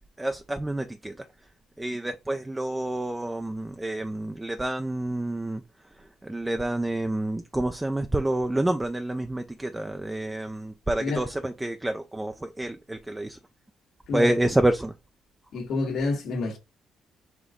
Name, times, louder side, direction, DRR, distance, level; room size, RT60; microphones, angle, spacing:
voice 1, 0.2-1.3 1.8-5.6 6.0-13.4 14.1-14.9, right 1 dB, 10° right, 0.4 m, -28 dB
voice 2, 15.5-16.6, left 3 dB, 75° left, 1.6 m, -28 dB
5.1 x 2.6 x 3.6 m
cardioid pair, 90°, 0 cm